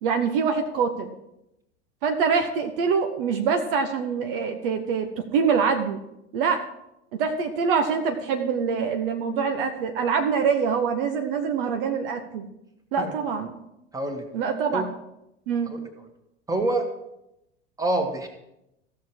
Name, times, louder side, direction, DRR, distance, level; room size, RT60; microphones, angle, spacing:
voice 1, 0.0-1.1 2.0-6.0 6.3-6.6 7.2-12.5 12.9-13.6 14.3-14.9 15.5-15.7, right 6 dB, 55° right, 6 dB, 1.0 m, -25 dB
voice 2, 13.9-14.3 14.7-14.8 16.5-16.9 17.8-18.3, right 2 dB, 10° right, 4 dB, 1.8 m, -25 dB
15.0 x 6.7 x 4.5 m, 0.86 s
figure-of-eight pair, 75°, 34 cm